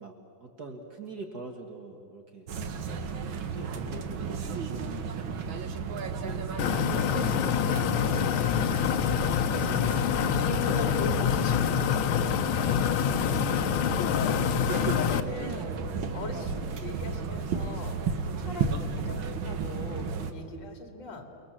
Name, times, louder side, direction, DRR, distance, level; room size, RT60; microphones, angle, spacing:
voice 1, 0.0-2.5 3.2-4.9 6.2-9.1 9.7-10.4 12.5-13.6, right 3 dB, 55° right, 3 dB, 2.1 m, -45 dB
sound 1, 2.5-20.3, right 5 dB, 80° right, 2.1 m, -33 dB
sound 2, 6.6-15.2, left 9 dB, 90° left, 1.6 m, -26 dB
voice 2, 9.9-12.0 13.4-14.4 14.6-21.2, left 3 dB, 65° left, 4 dB, 3.0 m, -39 dB
29.0 x 22.0 x 7.5 m, 2.7 s
omnidirectional pair, 2.2 m